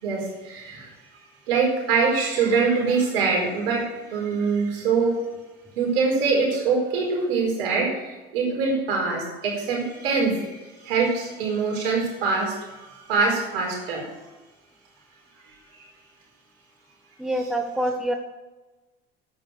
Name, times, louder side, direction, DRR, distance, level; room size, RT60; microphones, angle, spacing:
voice 1, 0.0-0.9 1.5-3.8 4.1-5.2 5.7-14.1, right 4 dB, 80° right, -1 dB, 4.6 m, -24 dB
voice 2, 17.2-18.1, right 1 dB, ahead, 5 dB, 1.6 m, -26 dB
11.0 x 9.0 x 6.6 m, 1.2 s
hypercardioid pair, 65°, 30 cm